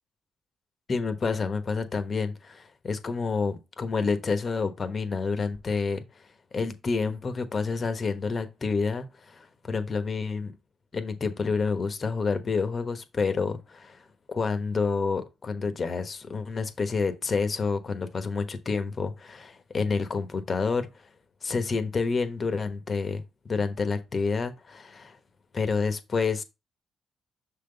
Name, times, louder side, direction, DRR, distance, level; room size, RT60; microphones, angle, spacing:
voice 1, 0.9-6.2 6.5-10.5 10.9-21.1 21.4-25.2 25.5-26.4, left 4 dB, 40° left, 1.1 m, -29 dB
6.3 x 3.9 x 3.8 m
cardioid pair, 90°, 0 cm